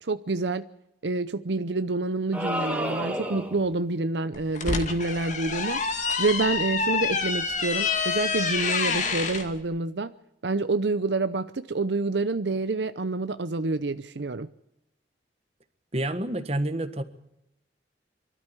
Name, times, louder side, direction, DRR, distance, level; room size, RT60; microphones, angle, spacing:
voice 1, 0.0-0.7 1.0-5.8 6.2-10.1 10.4-14.5, right 3 dB, 75° right, 0.7 m, -27 dB
sound 1, 2.3-3.7, equal, 10° right, 2.4 m, -30 dB
sound 2, 4.3-9.5, left 5 dB, 45° left, 2.1 m, -27 dB
voice 2, 15.9-17.0, right 1 dB, 35° right, 1.5 m, -28 dB
24.0 x 13.0 x 9.9 m
head